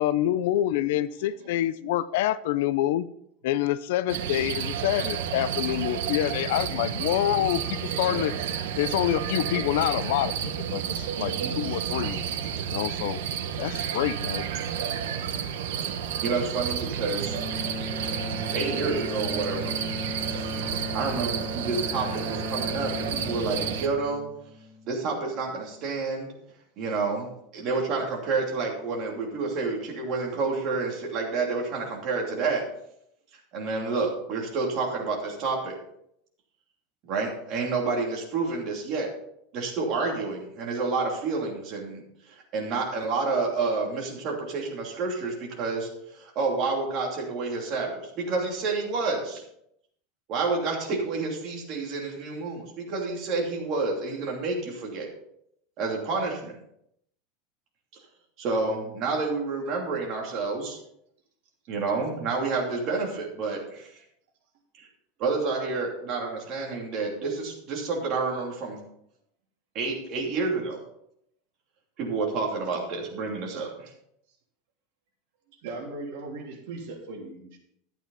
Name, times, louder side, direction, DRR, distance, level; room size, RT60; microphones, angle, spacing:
voice 1, 0.0-3.1 3.4-8.3 8.8-12.2 12.7-13.2 13.6-14.5, left 13 dB, 70° left, 16 dB, 0.5 m, -27 dB
sound 1, 4.1-23.9, right 8 dB, 85° right, 1.1 m, -31 dB
voice 2, 8.1-8.4 11.1-11.6 73.5-73.7 75.5-77.6, right 3 dB, 65° right, 0 dB, 3.2 m, -39 dB
voice 3, 16.2-17.3 18.5-19.8 20.9-24.2 24.9-26.3 26.8-27.3 27.5-32.6 33.5-35.7 37.1-39.1 39.5-42.0 42.5-49.4 50.3-55.1 55.8-56.5 58.4-60.8 61.7-63.9 64.8-64.9 65.2-68.8 69.7-70.8 72.0-73.9, right 4 dB, 40° right, -1 dB, 2.9 m, -29 dB
Bowed string instrument, 17.1-25.3, left 3 dB, ahead, 2.6 m, -37 dB
12.0 x 9.0 x 4.0 m, 0.74 s
supercardioid pair, 165°, 0 cm